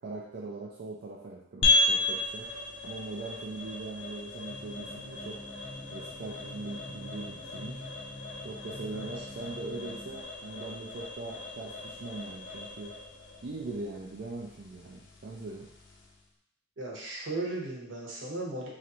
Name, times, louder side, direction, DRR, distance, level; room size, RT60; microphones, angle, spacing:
voice 1, 0.0-2.5 2.8-5.4 5.9-7.8 8.4-12.9 13.4-15.7, right 3 dB, 55° right, -3 dB, 0.4 m, -41 dB
sound 1, 1.6-16.2, left 2 dB, 65° left, 0.6 m, -35 dB
sound 2, 4.5-10.2, left 1 dB, 25° left, 0.4 m, -46 dB
voice 2, 16.8-18.7, right 2 dB, 75° right, -3 dB, 1.0 m, -36 dB
3.2 x 2.6 x 4.2 m, 0.77 s
head